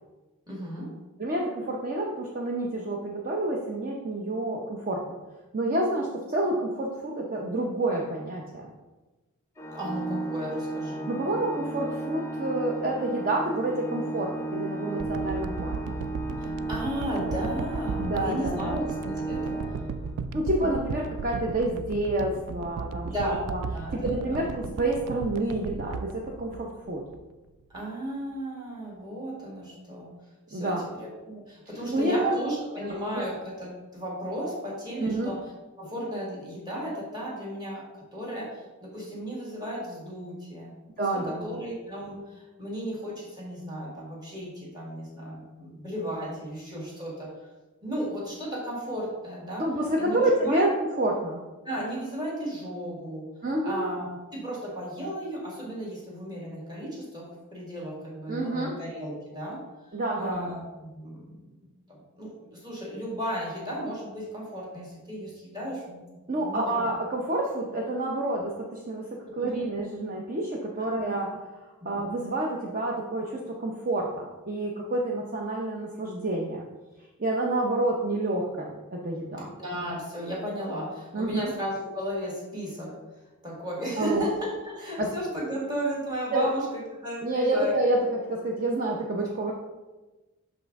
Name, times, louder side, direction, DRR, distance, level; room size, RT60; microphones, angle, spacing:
voice 1, 0.5-0.9 9.7-11.4 16.4-19.7 23.0-23.4 23.7-24.4 27.7-30.1 30.5-35.5 35.8-47.3 47.8-49.7 50.0-50.6 51.6-53.3 53.6-59.6 60.2-61.6 61.9-66.9 69.4-69.6 70.9-71.1 71.8-72.0 79.6-83.0 83.4-87.8, equal, 20° right, -4 dB, 1.7 m, -35 dB
voice 2, 1.2-5.2 5.5-8.7 11.1-15.9 18.0-18.8 20.3-23.1 23.5-23.6 24.0-27.0 30.5-30.9 31.7-32.3 32.9-33.0 35.0-35.3 41.0-41.6 49.5-50.7 51.0-51.4 53.4-53.9 58.3-58.7 59.9-60.5 66.3-69.1 69.4-71.3 71.8-76.6 77.2-79.5 81.1-81.5 84.0-84.2 85.0-85.1 86.3-86.5 87.2-89.5, right 1 dB, 40° right, -1 dB, 0.6 m, -28 dB
Organ, 9.6-20.4, right 2 dB, 15° left, 0.6 m, -34 dB
sound 1, 15.0-27.2 27.7-27.8, right 5 dB, 85° right, 0.3 m, -36 dB
6.2 x 5.4 x 3.5 m, 1.2 s
head